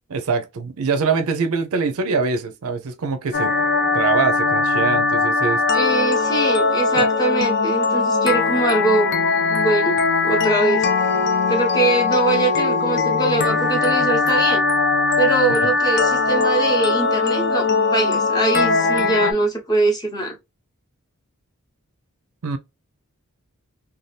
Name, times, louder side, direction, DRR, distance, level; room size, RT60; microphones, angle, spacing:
voice 1, 0.1-3.5 3.9-5.6 6.9-7.0 15.5-15.7 22.4-22.6, right 5 dB, 70° right, 0.5 m, -23 dB
sound 1, 3.3-19.3, left 4 dB, 50° left, 0.5 m, -20 dB
voice 2, 5.7-9.1 9.5-10.9 11.5-14.6 15.2-17.7 17.9-20.4, right 2 dB, 15° left, 0.7 m, -22 dB
2.7 x 2.3 x 3.2 m
head